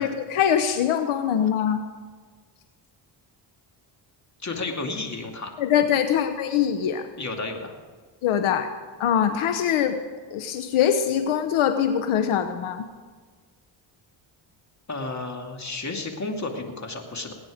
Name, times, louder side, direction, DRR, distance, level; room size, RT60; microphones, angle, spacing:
voice 1, 0.0-1.8 5.6-7.0 8.2-8.7 9.0-10.0 10.3-12.9, left 9 dB, 80° left, 8 dB, 1.0 m, -23 dB
voice 2, 4.4-5.5 7.2-7.8 14.9-17.3, left 3 dB, 35° left, 3 dB, 2.5 m, -32 dB
19.5 x 9.6 x 5.1 m, 1.5 s
cardioid pair, 75°, 49 cm